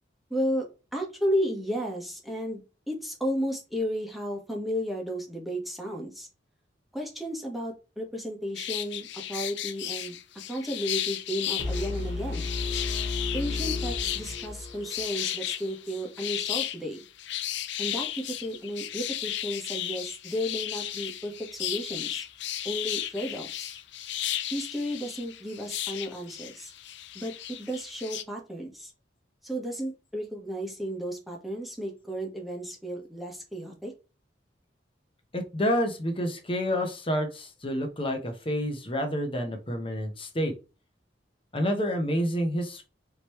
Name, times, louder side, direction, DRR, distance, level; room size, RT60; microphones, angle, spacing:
voice 1, 0.3-0.6 0.9-6.3 6.9-10.2 10.5-12.5 13.3-17.1 17.8-22.2 22.6-23.7 24.5-26.7 27.1-28.9 29.4-33.9, equal, ahead, -1 dB, 1.2 m, -33 dB
sound 1, 8.5-28.2, left 12 dB, 70° left, 0.5 m, -34 dB
sound 2, 11.6-15.5, left 3 dB, 80° right, 1.7 m, -33 dB
voice 2, 35.3-40.5 41.5-42.8, equal, 30° left, 4 dB, 1.0 m, -28 dB
5.1 x 3.0 x 3.1 m, 0.31 s
head